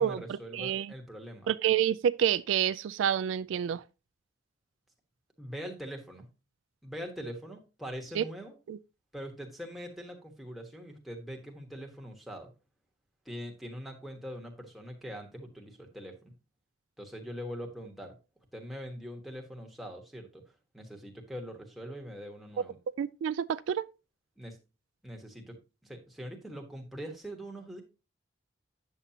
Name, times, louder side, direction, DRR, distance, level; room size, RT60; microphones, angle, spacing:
voice 1, 0.0-1.5 5.4-6.3 6.8-8.5 9.1-12.5 13.2-16.3 17.0-18.2 18.5-20.4 20.7-22.8 24.4-24.6 25.0-27.8, equal, ahead, 1.3 m, -42 dB
voice 2, 0.5-0.9 1.5-3.8 8.1-8.2 8.7-8.8 23.0-23.8, right 9 dB, 75° right, 0.3 m, -28 dB
8.2 x 7.2 x 2.8 m
head